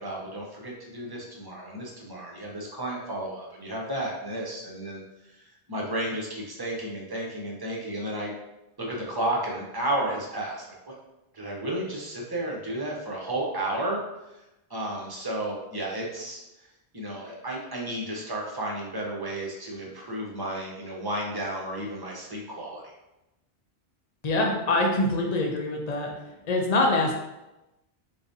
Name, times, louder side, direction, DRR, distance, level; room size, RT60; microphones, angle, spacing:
voice 1, 0.0-8.3 8.8-10.9 11.3-14.4 14.7-22.9, right 1 dB, 25° right, -3 dB, 0.7 m, -33 dB
voice 2, 24.2-26.1 26.5-27.1, left 2 dB, 45° left, 1 dB, 0.7 m, -24 dB
4.0 x 3.4 x 2.6 m, 0.95 s
omnidirectional pair, 1.1 m